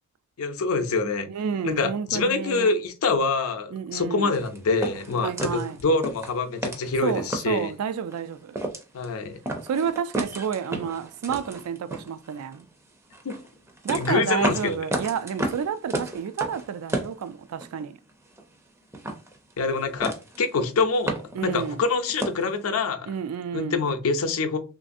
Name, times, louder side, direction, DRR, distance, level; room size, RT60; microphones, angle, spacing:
voice 1, 0.4-1.3 1.6-7.7 8.9-9.4 13.2-13.4 13.9-14.8 19.6-23.1 23.5-24.6, left 4 dB, 70° left, 0.5 m, -25 dB
voice 2, 1.3-2.7 3.7-4.3 5.2-5.8 7.0-8.6 9.6-12.7 13.8-18.0 21.4-21.8 23.1-23.8, right 7 dB, 80° right, 0.3 m, -30 dB
sound 1, 4.3-7.7 8.1-8.2 8.5-9.1 9.5-12.6 13.1-17.8 18.1-18.7 18.9-19.8 20.0-20.5 20.8-22.5, right 1 dB, 10° right, 0.4 m, -32 dB
3.1 x 2.6 x 2.5 m
head